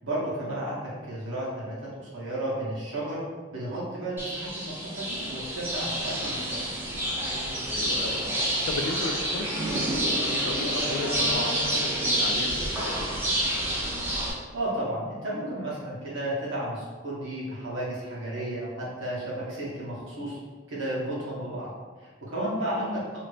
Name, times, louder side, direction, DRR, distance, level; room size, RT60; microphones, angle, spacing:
voice 1, 0.0-3.2 3.5-6.7 14.5-20.4 20.7-21.7 22.0-23.0, right 1 dB, 90° right, -7 dB, 1.2 m, -33 dB
sound 1, 4.2-14.3, right 1 dB, 10° right, 0.6 m, -28 dB
voice 2, 7.7-13.1 22.7-23.0, left 3 dB, 70° left, 4 dB, 0.3 m, -36 dB
2.8 x 2.6 x 3.3 m, 1.4 s
head